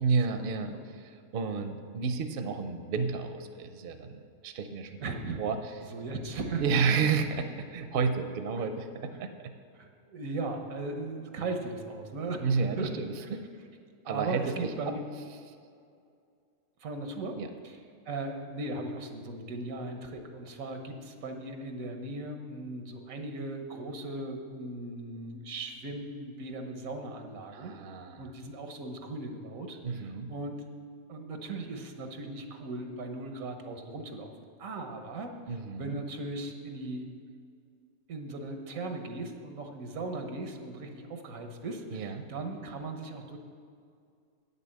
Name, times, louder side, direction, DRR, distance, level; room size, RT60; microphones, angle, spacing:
voice 1, 0.0-4.9 5.4-5.6 6.6-9.5 12.4-13.4 14.1-14.9 17.4-17.5 27.5-28.2 29.8-30.3 35.5-36.0 41.9-42.3, right 5 dB, 55° right, 8 dB, 0.7 m, -31 dB
voice 2, 5.0-5.4 5.9-6.6 8.6-8.7 9.7-12.4 12.8-12.9 14.0-15.0 16.8-17.8 18.1-27.8 28.2-30.6 31.1-34.3 34.6-37.1 38.1-43.4, right 2 dB, 90° right, 4 dB, 1.4 m, -38 dB
8.7 x 6.8 x 7.5 m, 2.3 s
omnidirectional pair, 1.4 m